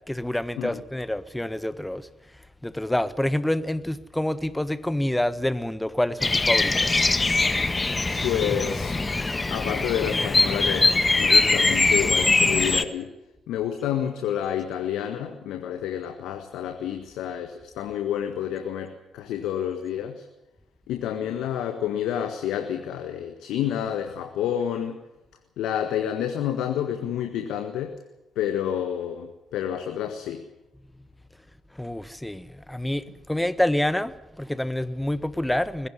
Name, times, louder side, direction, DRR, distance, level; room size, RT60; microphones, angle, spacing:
voice 1, 0.1-2.1 2.6-7.0 31.8-35.9, left 1 dB, 10° left, 1.4 m, -27 dB
Bird vocalization bird call bird song, 6.2-12.8, left 3 dB, 30° left, 1.6 m, -22 dB
voice 2, 8.2-9.0 9.5-10.9 11.2-13.1 13.5-20.2 20.9-25.0 25.6-27.9 28.3-30.4, left 10 dB, 75° left, 1.6 m, -29 dB
20.5 x 16.0 x 9.9 m
hypercardioid pair, 45°, 0 cm